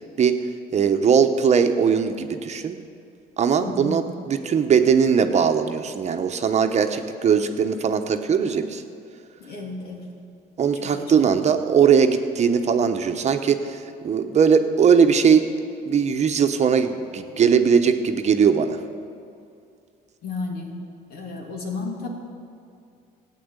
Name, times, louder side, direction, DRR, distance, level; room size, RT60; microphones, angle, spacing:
voice 1, 0.7-2.8 3.4-8.8 10.6-15.5 15.9-18.8, right 6 dB, 40° right, 7 dB, 1.0 m, -20 dB
voice 2, 3.6-3.9 9.4-10.0 10.9-11.3 20.2-20.7 21.1-22.1, left 4 dB, 65° left, 0 dB, 2.8 m, -33 dB
15.0 x 9.3 x 8.1 m, 2.4 s
cardioid pair, 110°, 17 cm